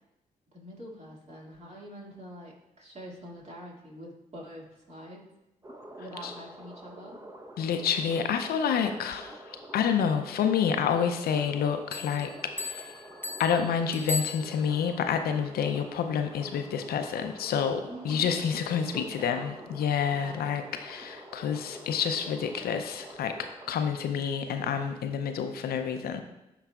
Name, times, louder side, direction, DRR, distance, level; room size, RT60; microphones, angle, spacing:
voice 1, 0.5-5.2 6.0-7.2 17.9-18.4 18.9-19.4 20.1-20.6, equal, 45° right, -3 dB, 2.2 m, -44 dB
sound 1, 5.6-23.7, right 1 dB, 20° right, 0.9 m, -47 dB
voice 2, 7.6-9.4 9.7-12.9 13.4-26.2, left 7 dB, 75° left, 7 dB, 0.5 m, -28 dB
Bell, 11.9-15.0, left 3 dB, 15° left, 0.6 m, -38 dB
11.0 x 4.0 x 2.3 m, 0.95 s
supercardioid pair, 45°, 16 cm